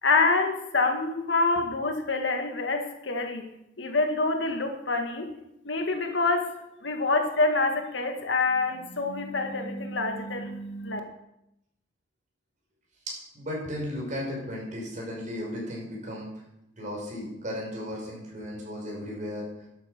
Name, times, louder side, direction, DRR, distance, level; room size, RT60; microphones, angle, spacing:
voice 1, 0.0-3.4 3.8-5.3 5.7-6.5 6.8-11.0, left 3 dB, 75° left, 4 dB, 1.9 m, -26 dB
voice 2, 13.3-16.3 16.8-19.5, left 1 dB, 45° right, -2 dB, 5.7 m, -35 dB
12.0 x 9.0 x 6.7 m, 0.83 s
head